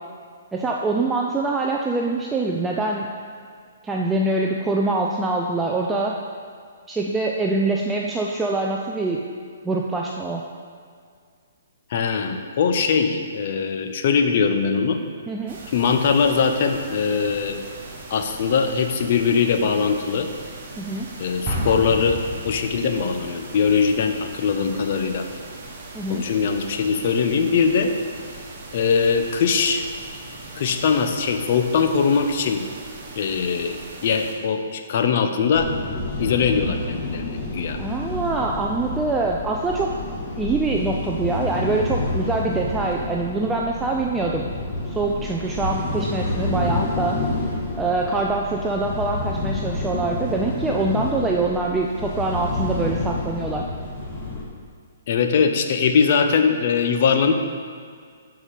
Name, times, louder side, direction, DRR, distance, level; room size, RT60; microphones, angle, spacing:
voice 1, 0.5-3.1 3.8-6.1 6.9-9.2 9.6-10.4 15.3-15.6 20.8-21.1 25.9-26.2 37.8-39.9 40.4-44.5 44.9-47.5 47.8-53.6, right 3 dB, 10° right, -1 dB, 0.4 m, -24 dB
voice 2, 11.9-15.0 15.7-17.6 18.1-20.3 21.2-25.2 26.1-27.9 28.7-29.8 30.6-32.7 33.2-35.7 36.2-37.8 55.1-57.3, left 6 dB, 50° left, 6 dB, 0.6 m, -21 dB
sound 1, 15.5-34.3, right 2 dB, 45° right, 1.3 m, -40 dB
Explosion, 21.4-23.2, equal, 30° right, 1.6 m, -29 dB
sound 2, 35.5-54.4, left 2 dB, 30° left, 1.2 m, -29 dB
6.2 x 4.8 x 5.7 m, 2.1 s
hypercardioid pair, 145°, 0 cm